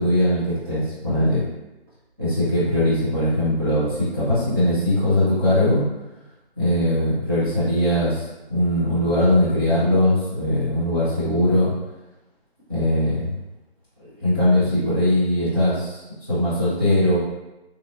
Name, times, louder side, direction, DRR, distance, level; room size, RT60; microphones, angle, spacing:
voice 1, 0.0-1.4 2.2-5.8 6.6-11.7 12.7-13.3 14.2-16.0 16.3-17.2, left 1 dB, 20° right, -15 dB, 0.7 m, -20 dB
2.9 x 2.1 x 2.4 m, 1.0 s
figure-of-eight pair, 165°, 31 cm